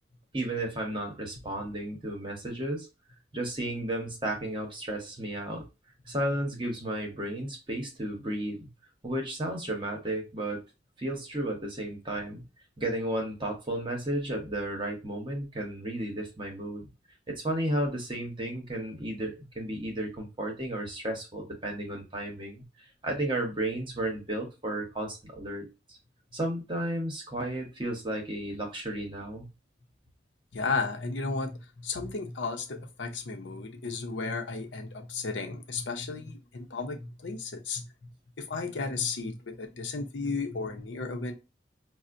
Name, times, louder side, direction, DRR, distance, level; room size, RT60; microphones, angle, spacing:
voice 1, 0.3-2.9 3.3-5.7 6.1-8.7 9.0-10.6 11.0-12.4 12.8-16.9 17.3-22.6 23.0-26.0 26.3-29.5, right 1 dB, 25° right, 1 dB, 0.9 m, -33 dB
voice 2, 30.5-38.1 38.5-41.3, left 4 dB, 85° left, 4 dB, 0.7 m, -34 dB
5.4 x 2.1 x 2.5 m, 0.27 s
head